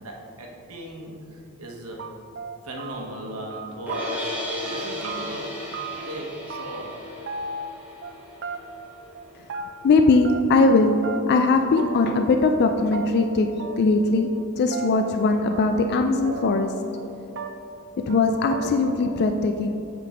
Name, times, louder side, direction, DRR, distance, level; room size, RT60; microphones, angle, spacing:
voice 1, 0.0-2.1 2.6-4.4 4.6-5.6 6.0-7.0, right 1 dB, 75° right, 0 dB, 1.0 m, -37 dB
sound 1, 1.6-1.7 2.0-3.2 3.5-4.4 4.7-6.1 6.5-7.0 7.3-8.1 8.4-8.9 9.1-9.9 10.2-10.8 11.0-11.5 11.8-12.2 12.5-12.6 12.9-13.1 13.6-14.1 14.3-16.0 16.2-17.1 17.4-17.8 18.1-18.2 18.5-19.0, right 4 dB, 55° right, 0.5 m, -36 dB
sound 2, 3.9-10.0, left 1 dB, 10° right, 1.4 m, -35 dB
voice 2, 9.8-10.9 11.3-13.5 13.8-14.3 14.6-16.7 18.0-19.8, left 3 dB, 50° left, 5 dB, 0.3 m, -20 dB
8.2 x 3.7 x 4.9 m, 2.6 s
head